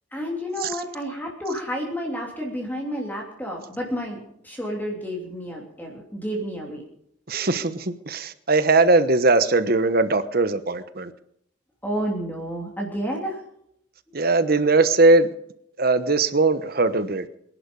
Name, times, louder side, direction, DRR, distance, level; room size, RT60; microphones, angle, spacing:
voice 1, 0.1-4.2 4.4-6.8 11.8-13.4, equal, 10° left, -1 dB, 3.0 m, -30 dB
voice 2, 7.3-11.1 14.1-15.3 15.8-17.3, right 3 dB, 50° right, 12 dB, 1.1 m, -20 dB
24.0 x 11.0 x 5.4 m, 0.72 s
head